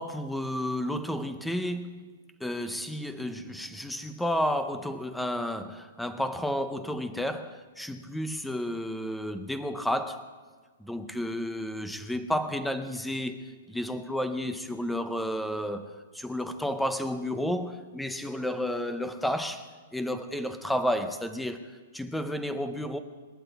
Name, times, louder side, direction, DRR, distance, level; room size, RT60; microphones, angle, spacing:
voice 1, 0.0-2.0 2.4-10.3 10.8-23.0, equal, ahead, 10 dB, 0.6 m, -32 dB
27.0 x 11.5 x 4.1 m, 1.5 s
hypercardioid pair, 180°, 0 cm